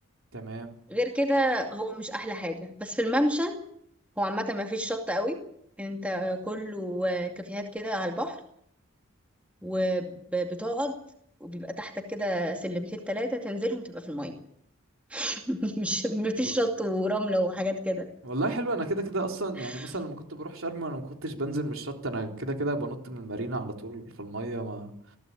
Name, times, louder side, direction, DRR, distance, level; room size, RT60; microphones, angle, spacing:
voice 1, 0.3-0.7 16.4-16.5 18.2-24.9, right 2 dB, 70° right, 3 dB, 3.7 m, -32 dB
voice 2, 0.9-3.5 4.2-5.4 5.8-8.4 9.6-11.0 11.4-14.3 15.1-18.1 19.6-19.9, equal, 5° right, 3 dB, 2.3 m, -29 dB
22.0 x 15.5 x 8.6 m, 0.71 s
head